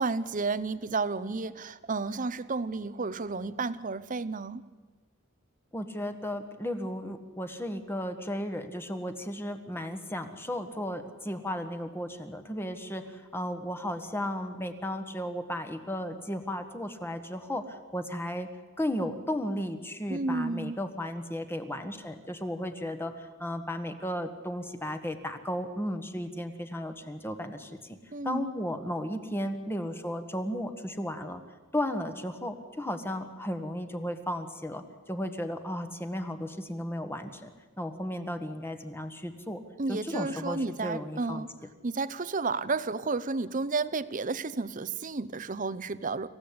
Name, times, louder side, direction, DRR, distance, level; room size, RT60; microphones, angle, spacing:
voice 1, 0.0-4.6 20.1-20.8 28.1-28.5 39.8-41.5 41.8-46.3, right 3 dB, 40° right, 16 dB, 0.7 m, -32 dB
voice 2, 5.7-18.5 18.8-28.0 28.2-31.4 31.7-37.5 37.8-39.6 39.9-41.4, left 1 dB, 10° left, 7 dB, 1.4 m, -34 dB
26.5 x 15.5 x 8.7 m, 1.3 s
head